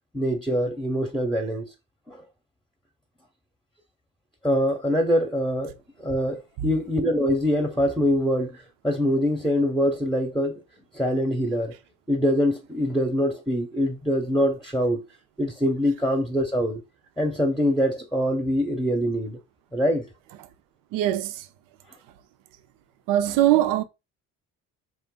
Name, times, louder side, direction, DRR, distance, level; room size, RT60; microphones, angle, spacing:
voice 1, 0.1-1.7 2.1-2.2 4.4-10.6 10.9-11.7 12.1-15.0 15.4-16.8 17.2-19.4 19.7-20.1, equal, ahead, 0.8 m, -24 dB
voice 2, 20.9-21.4 23.1-23.8, right 13 dB, 80° right, 0.5 m, -21 dB
3.9 x 2.5 x 3.8 m
supercardioid pair, 75°, 32 cm